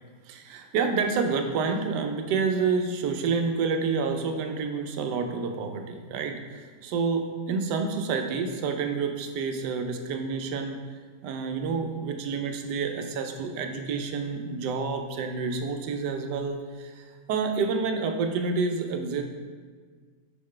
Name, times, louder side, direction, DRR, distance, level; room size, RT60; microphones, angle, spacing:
voice 1, 0.3-10.8 11.2-19.2, right 5 dB, 85° right, 5 dB, 1.2 m, -28 dB
5.7 x 5.6 x 3.2 m, 1.5 s
omnidirectional pair, 1.8 m